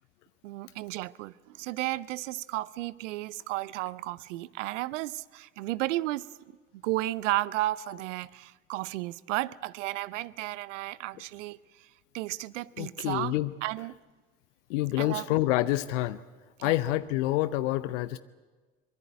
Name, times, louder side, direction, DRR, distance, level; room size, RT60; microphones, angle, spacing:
voice 1, 0.4-6.3 6.7-11.9 12.1-13.4 13.6-14.0 15.0-15.3 16.6-16.7, right 17 dB, 75° right, 0.7 m, -33 dB
voice 2, 12.8-13.5 14.7-16.2 16.6-18.2, left 16 dB, 70° left, 0.7 m, -27 dB
24.0 x 22.0 x 8.2 m
figure-of-eight pair, 55°, 38 cm